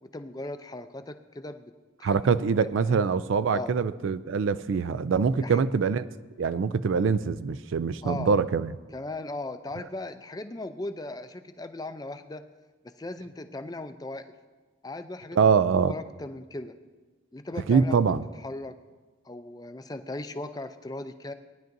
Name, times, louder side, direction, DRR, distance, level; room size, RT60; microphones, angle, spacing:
voice 1, 0.0-1.7 2.0-2.2 2.6-3.0 3.5-3.7 5.4-5.6 8.0-8.3 8.9-12.4 12.8-14.3 14.8-15.4 15.7-16.8 17.3-18.0 18.4-18.8 19.2-21.3, left 2 dB, 20° left, 9 dB, 0.4 m, -38 dB
voice 2, 2.0-6.1 6.4-8.7 15.4-15.9 17.7-18.2, right 5 dB, 70° right, 14 dB, 0.4 m, -24 dB
18.5 x 10.5 x 2.6 m, 1.3 s
head